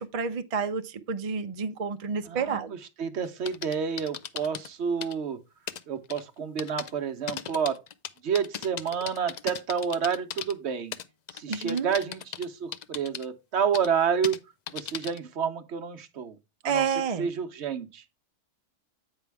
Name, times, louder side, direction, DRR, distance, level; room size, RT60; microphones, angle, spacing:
voice 1, 0.0-2.7 11.5-11.9 16.6-17.3, right 6 dB, 45° right, 0.5 m, -29 dB
voice 2, 2.3-5.4 5.9-7.8 8.2-10.9 11.3-14.4 14.7-16.4 16.6-16.8 17.2-18.0, right 7 dB, 65° right, 1.0 m, -29 dB
sound 1, 3.2-4.7 5.0-5.1 5.7-5.8 6.1-6.2 6.6-6.9 7.3-10.5 10.9-12.5 12.7-13.3 13.7-13.9 14.2-14.4 14.7-15.2, left 8 dB, 80° left, 0.3 m, -37 dB
8.4 x 5.4 x 3.4 m
omnidirectional pair, 1.3 m